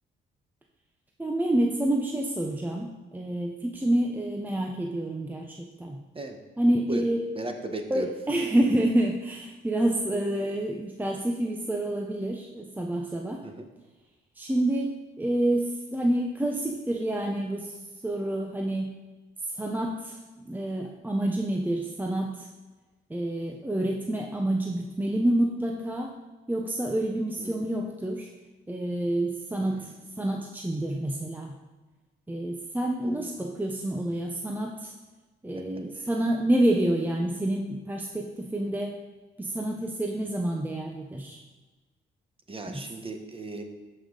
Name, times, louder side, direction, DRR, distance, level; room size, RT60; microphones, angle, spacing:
voice 1, 1.2-6.0 6.6-7.2 7.9-13.4 14.4-17.8 18.0-18.9 19.5-20.2 20.4-22.5 23.1-26.1 26.5-28.3 28.7-29.9 30.2-31.5 32.3-34.9 35.4-39.0 39.4-41.4 42.7-42.8, right 1 dB, 10° right, 1 dB, 0.7 m, -28 dB
voice 2, 7.3-8.1 13.4-13.7 27.4-27.6 29.6-29.9 33.0-33.4 35.9-36.1 42.5-43.6, right 1 dB, 25° right, 4 dB, 1.2 m, -36 dB
13.5 x 5.5 x 3.9 m, 1.2 s
cardioid pair, 90°, 20 cm